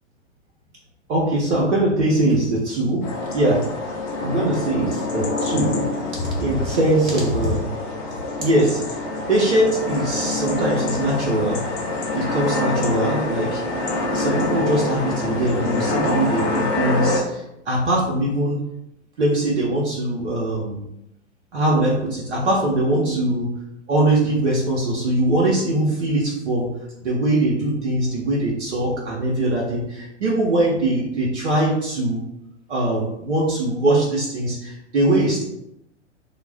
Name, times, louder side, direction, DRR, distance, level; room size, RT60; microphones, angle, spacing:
voice 1, 1.1-7.7 8.4-9.0 9.3-11.7 12.1-13.6 14.1-18.7 19.2-20.8 21.5-23.5 23.9-32.3 32.7-35.4, right 1 dB, 70° right, -4 dB, 0.8 m, -22 dB
sound 1, 3.0-17.2, left 2 dB, 45° left, 0.7 m, -26 dB
2.3 x 2.1 x 3.3 m, 0.82 s
figure-of-eight pair, 100°, 36 cm